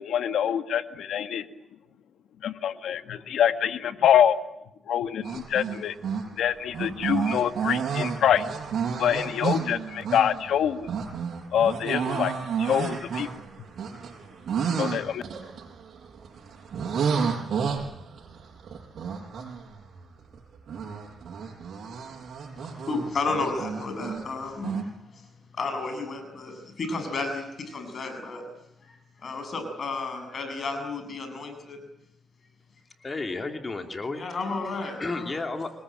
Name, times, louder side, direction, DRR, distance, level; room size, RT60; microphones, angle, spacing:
voice 1, 0.0-1.4 2.4-4.4 4.9-5.9 6.4-8.5 9.0-10.9 11.5-12.3 12.6-13.3 14.8-15.2, left 9 dB, 85° left, 10 dB, 1.8 m, -25 dB
sound 1, 5.2-6.4 6.7-20.4 20.7-24.3 24.6-24.8, right 6 dB, 65° right, 7.0 m, -31 dB
voice 2, 22.6-24.7 25.1-25.2 25.6-28.5 29.2-31.8 34.2-35.4, left 3 dB, 50° left, 6 dB, 7.6 m, -32 dB
voice 3, 33.0-34.3 34.7-35.7, left 3 dB, 30° left, 5 dB, 2.8 m, -33 dB
27.5 x 21.5 x 9.0 m, 0.81 s
cardioid pair, 100°, 0 cm